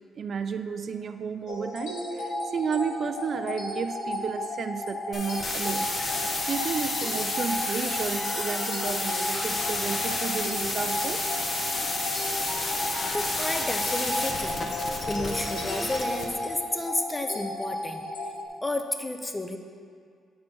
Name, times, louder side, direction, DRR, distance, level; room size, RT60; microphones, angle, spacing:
voice 1, 0.2-5.9 6.5-11.2, right 6 dB, 50° right, 8 dB, 0.3 m, -32 dB
sound 1, 1.5-18.5, left 1 dB, 80° left, 1.2 m, -34 dB
sound 2, 5.1-16.2, left 2 dB, 40° left, 1.0 m, -31 dB
voice 2, 13.1-14.6 15.1-18.1 18.6-19.6, left 1 dB, 15° left, 6 dB, 0.6 m, -31 dB
8.4 x 4.3 x 4.5 m, 2.1 s
cardioid pair, 90°, 0 cm